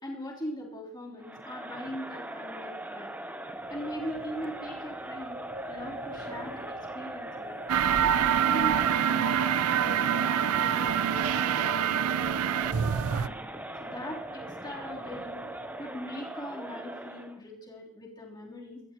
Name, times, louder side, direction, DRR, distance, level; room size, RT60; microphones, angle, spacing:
voice 1, 0.0-3.1 3.7-5.4 5.7-7.6 7.8-9.3 9.8-12.8 13.1-13.3 13.8-15.4 15.8-18.8, equal, 20° left, -4 dB, 3.5 m, -41 dB
Crowd, 1.2-17.4, right 1 dB, 10° right, 0.8 m, -40 dB
Wind, 3.5-16.1, right 2 dB, 40° right, 0.9 m, -45 dB
sound 1, 7.7-13.3, right 9 dB, 75° right, 0.4 m, -26 dB
23.5 x 13.5 x 3.0 m, 0.89 s
head